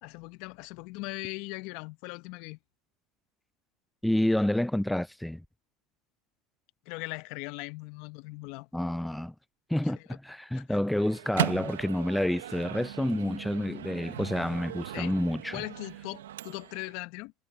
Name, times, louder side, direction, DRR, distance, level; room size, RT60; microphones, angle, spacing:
voice 1, 0.0-2.6 6.9-8.7 9.8-9.9 10.5-10.8 14.9-15.2 15.5-17.3, left 24 dB, 65° left, 0.8 m, -39 dB
voice 2, 4.0-5.4 8.7-9.3 9.7-15.6, left 1 dB, 5° left, 0.4 m, -29 dB
Microwave oven, 10.9-16.9, right 12 dB, 90° right, 1.0 m, -38 dB
hypercardioid pair, 90°, 0 cm